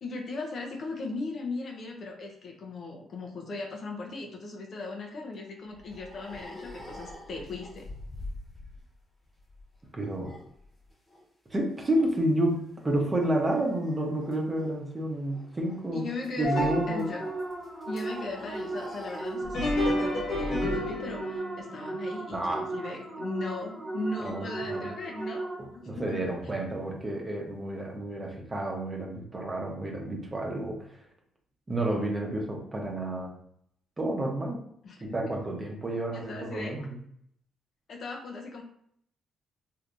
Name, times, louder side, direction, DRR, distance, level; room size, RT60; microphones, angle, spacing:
voice 1, 0.0-7.9 15.9-17.3 17.9-25.5 25.7-26.3 34.8-35.0 35.2-35.4 36.1-36.9 37.9-38.6, left 3 dB, 55° left, 1 dB, 0.7 m, -38 dB
sound 1, 5.3-9.0 9.2-11.2 11.5-12.2 12.5-19.5, left 1 dB, 35° left, 1.2 m, -47 dB
voice 2, 9.9-10.3 11.5-16.1 16.4-17.1 22.3-22.7 24.2-24.9 25.6-30.8 31.7-33.3 34.0-34.6 35.0-37.0, right 1 dB, 25° right, 0 dB, 0.9 m, -30 dB
sound 2, 16.4-17.6 19.4-23.8 24.3-24.4 25.2-25.3 26.1-26.2, left 1 dB, 70° left, 1.3 m, -32 dB
sound 3, 16.5-25.9, right 2 dB, 5° left, 0.8 m, -37 dB
3.3 x 2.7 x 2.5 m, 0.70 s
cardioid pair, 90°, 0 cm